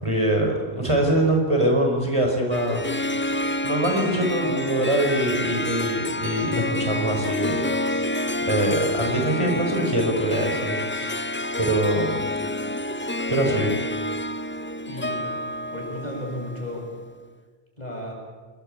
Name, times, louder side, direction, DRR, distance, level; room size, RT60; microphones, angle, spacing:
voice 1, 0.0-2.9 3.2-8.1 8.5-11.3 11.6-12.2 13.3-13.7, right 1 dB, 30° right, 1 dB, 5.1 m, -24 dB
Harp, 2.5-17.0, left 1 dB, 15° left, 0.5 m, -28 dB
voice 2, 14.9-15.3 15.7-16.9 17.8-18.1, left 1 dB, 40° left, -1 dB, 8.0 m, -33 dB
26.0 x 21.0 x 8.9 m, 1.5 s
omnidirectional pair, 1.1 m